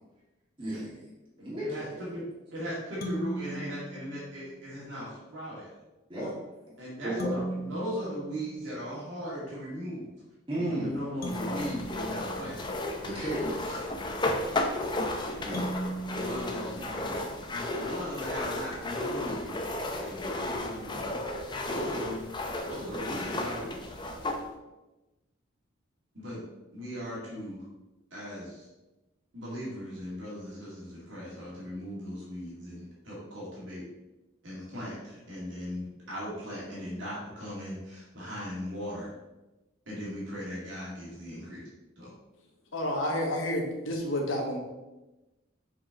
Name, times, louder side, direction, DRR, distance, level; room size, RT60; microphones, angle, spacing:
voice 1, 0.6-1.1 1.4-2.0 6.1-6.3 7.0-7.5 10.5-11.0 13.0-13.9 15.1-15.7, right 1 dB, 25° right, -7 dB, 1.7 m, -34 dB
voice 2, 1.6-2.2 2.5-5.7 6.8-10.1 10.7-12.6 15.3-15.7 16.1-17.2 17.5-19.7 20.0-21.2 21.6-22.2 22.6-24.0 26.1-26.4 26.7-27.7 28.1-28.7 29.3-33.8 34.4-39.1 39.9-41.7 42.0-42.1, equal, 70° right, -7 dB, 2.2 m, -38 dB
sound 1, 3.0-4.7 7.2-9.2 11.2-13.4 15.5-17.6, right 1 dB, 50° left, 0.9 m, -39 dB
sound 2, 11.2-24.4, left 2 dB, 20° left, 0.6 m, -34 dB
voice 3, 42.7-44.6, left 1 dB, 75° left, 0 dB, 1.5 m, -30 dB
6.2 x 5.0 x 3.8 m, 1.1 s
head